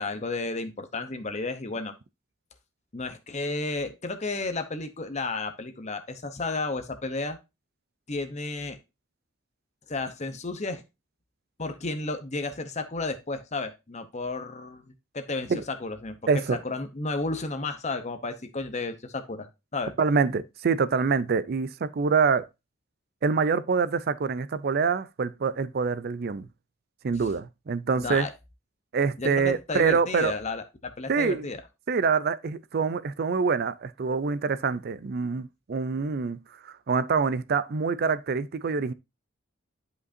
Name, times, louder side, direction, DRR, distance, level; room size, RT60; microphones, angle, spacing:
voice 1, 0.0-1.9 2.9-7.4 8.1-8.8 9.9-10.8 11.6-16.2 16.5-19.9 28.0-28.3 29.2-31.6, left 3 dB, 35° left, 0.8 m, -32 dB
voice 2, 16.3-16.6 20.0-22.5 23.2-26.5 27.0-28.3 28.9-30.3 31.1-31.5 31.9-38.9, right 5 dB, 45° right, 0.4 m, -25 dB
11.0 x 5.1 x 2.6 m
head